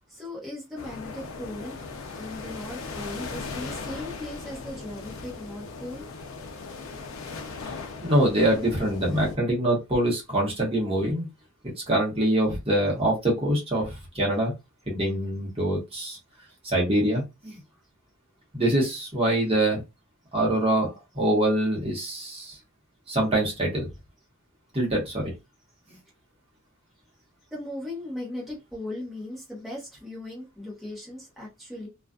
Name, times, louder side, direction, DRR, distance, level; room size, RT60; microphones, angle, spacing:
voice 1, 0.1-1.9 2.1-6.0 27.5-31.9, left 1 dB, ahead, 0.9 m, -38 dB
sound 1, 0.8-9.4, left 4 dB, 80° left, 0.5 m, -38 dB
voice 2, 8.0-11.2 11.9-14.5 14.9-16.2 16.6-17.6 18.5-19.8 20.3-22.6 23.1-23.9 24.7-25.3, right 1 dB, 30° right, 1.0 m, -24 dB
2.5 x 2.3 x 2.3 m
head